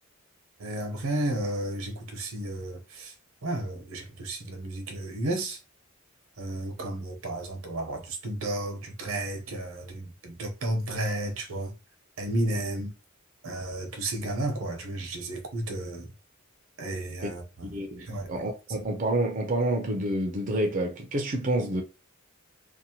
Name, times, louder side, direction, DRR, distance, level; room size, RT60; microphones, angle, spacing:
voice 1, 0.6-3.1 3.4-5.6 6.4-11.7 12.2-12.9 13.4-16.1 16.8-17.7 18.1-18.4, right 1 dB, 85° right, 0.8 m, -32 dB
voice 2, 17.7-21.8, right 1 dB, 40° right, 0.5 m, -28 dB
2.7 x 2.1 x 2.8 m
head